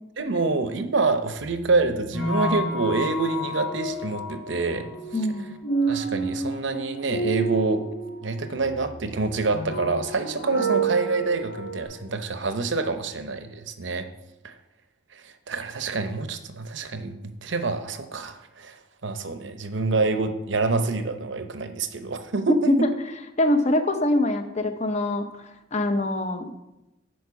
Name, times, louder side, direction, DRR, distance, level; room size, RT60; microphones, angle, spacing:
voice 1, 0.2-4.8 5.9-7.8 8.2-14.1 14.4-14.5 15.1-18.8 19.0-22.7, right 3 dB, 65° right, 8 dB, 0.7 m, -27 dB
sound 1, 1.4-11.8, right 2 dB, 85° left, 2.2 m, -30 dB
voice 2, 5.1-5.4 22.7-22.9 23.4-25.4 25.7-26.5, left 1 dB, 35° left, 7 dB, 0.7 m, -23 dB
9.5 x 4.5 x 5.7 m, 0.95 s
head